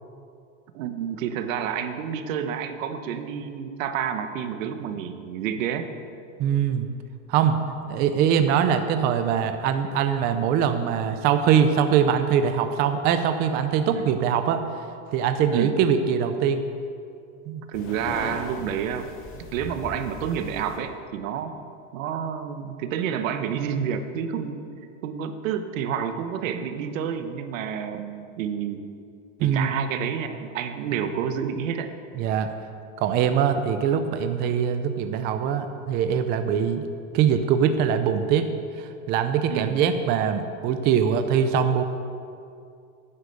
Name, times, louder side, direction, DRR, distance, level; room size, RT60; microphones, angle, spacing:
voice 1, 0.7-5.9 13.9-14.1 15.5-15.7 17.7-21.6 21.9-24.6 25.0-28.8 29.4-31.9 39.5-39.8, right 8 dB, 85° right, 8 dB, 1.2 m, -29 dB
voice 2, 6.4-6.9 7.3-7.6 7.9-14.6 15.1-16.6 17.5-17.6 29.4-29.7 32.2-32.5 33.0-36.8 37.1-38.5 38.8-41.8, right 8 dB, 25° right, 8 dB, 0.5 m, -22 dB
sound 1, 17.7-20.8, left 3 dB, 35° left, 1.9 m, -38 dB
10.0 x 9.9 x 6.8 m, 2.4 s
supercardioid pair, 165°, 38 cm